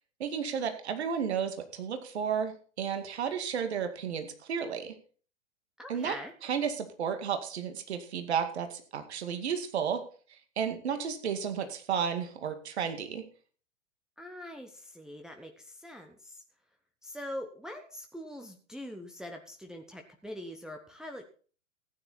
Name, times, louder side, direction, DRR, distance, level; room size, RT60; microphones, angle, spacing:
voice 1, 0.2-4.9 5.9-6.2 6.4-10.0 10.6-13.2, right 7 dB, 55° right, 7 dB, 2.2 m, -32 dB
voice 2, 5.8-6.3 14.2-16.4 17.0-21.3, left 1 dB, ahead, 3 dB, 0.9 m, -43 dB
15.0 x 10.0 x 4.3 m, 0.41 s
figure-of-eight pair, 105°, 38 cm